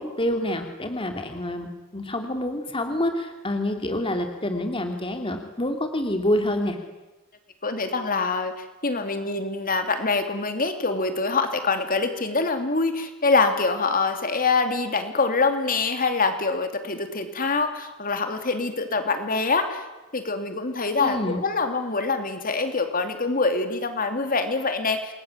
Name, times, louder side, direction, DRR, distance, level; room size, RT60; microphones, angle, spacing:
voice 1, 0.0-6.8 21.0-21.4, left 1 dB, 25° left, 5 dB, 2.6 m, -27 dB
voice 2, 7.6-19.8 20.1-25.1, left 4 dB, 40° left, 7 dB, 2.7 m, -25 dB
28.0 x 21.5 x 9.8 m, 1.1 s
head